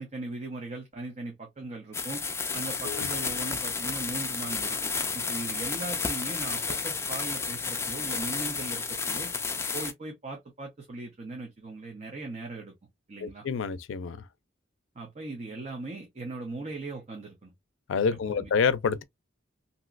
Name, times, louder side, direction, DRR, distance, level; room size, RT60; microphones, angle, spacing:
voice 1, 0.0-2.2 2.5-4.8 5.1-9.3 9.7-12.7 13.1-13.5 14.9-17.5 18.3-18.5, right 3 dB, 35° right, 0.8 m, -39 dB
sound 1, 1.9-9.9, left 5 dB, 15° left, 0.4 m, -31 dB
voice 2, 13.2-14.2 17.9-19.0, left 5 dB, 80° left, 0.4 m, -28 dB
3.0 x 2.7 x 2.4 m
head